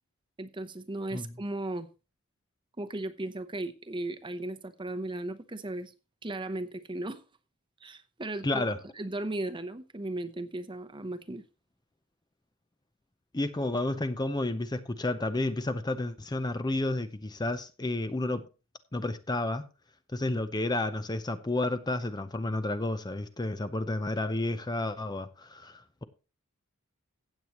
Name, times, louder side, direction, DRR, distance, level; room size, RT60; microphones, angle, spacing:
voice 1, 0.4-1.9 2.8-5.9 6.2-7.2 7.8-11.4, right 2 dB, 25° right, 0.8 m, -36 dB
voice 2, 8.4-8.8 13.3-18.4 18.9-19.7 20.1-26.0, left 2 dB, 20° left, 0.6 m, -31 dB
15.5 x 8.0 x 3.0 m
head